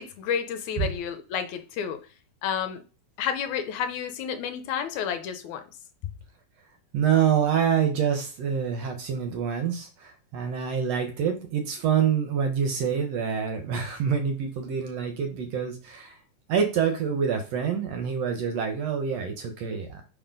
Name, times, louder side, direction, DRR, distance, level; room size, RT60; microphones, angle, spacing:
voice 1, 0.0-2.1 2.4-2.8 3.2-5.6, left 8 dB, 75° left, 1.9 m, -30 dB
voice 2, 6.9-16.2 16.5-19.9, right 7 dB, 70° right, 1.7 m, -26 dB
5.7 x 4.5 x 5.1 m
omnidirectional pair, 3.5 m